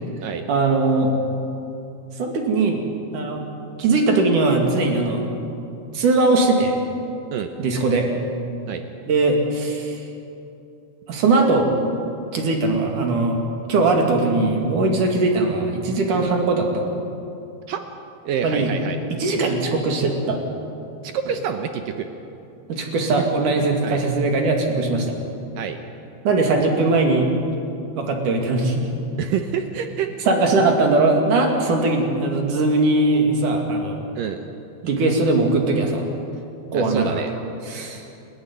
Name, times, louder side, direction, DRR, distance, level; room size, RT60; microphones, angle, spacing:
voice 1, 0.5-1.1 2.2-2.8 3.1-3.4 3.8-5.3 5.9-6.8 7.6-8.1 9.1-10.0 11.1-11.7 12.3-13.4 13.7-16.9 18.4-18.7 19.1-20.4 22.7-25.1 26.3-27.3 28.0-28.9 30.3-34.0 34.8-36.0 36.7-37.2 37.7-38.0, right 3 dB, 50° right, 2 dB, 3.4 m, -20 dB
voice 2, 18.3-19.0 19.4-19.5 21.0-22.1 23.2-23.3 23.8-24.0 25.6-25.8 29.2-30.3 34.2-34.5 36.7-37.3, right 8 dB, 85° right, 6 dB, 2.0 m, -27 dB
30.0 x 13.0 x 9.7 m, 2.8 s
omnidirectional pair, 5.2 m